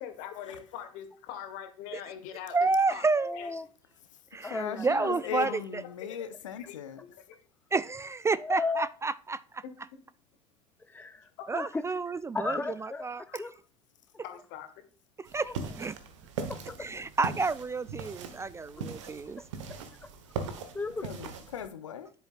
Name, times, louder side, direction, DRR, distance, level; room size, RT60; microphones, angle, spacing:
voice 1, 0.0-3.1 3.3-3.5 5.2-5.6 6.1-6.2 6.7-7.4 9.6-10.0 11.4-11.5 13.3-13.4 14.2-14.8, left 9 dB, 60° left, 1.5 m, -43 dB
voice 2, 2.5-3.3 4.3-5.8 7.7-9.6 11.5-13.4 15.2-16.0 16.8-19.4, right 4 dB, 15° right, 0.4 m, -30 dB
voice 3, 3.2-3.7 4.4-5.1 8.4-8.9 10.8-11.8 12.3-13.5 15.3-15.7 16.4-16.9 18.8-18.9 19.4-19.5 20.0-20.1 20.5-21.0, left 3 dB, 10° left, 0.7 m, -35 dB
voice 4, 4.1-7.0 21.0-22.1, left 9 dB, 75° left, 0.7 m, -39 dB
sound 1, 15.2-21.7, right 5 dB, 70° right, 1.3 m, -40 dB
10.5 x 8.0 x 2.5 m
figure-of-eight pair, 60°, 16 cm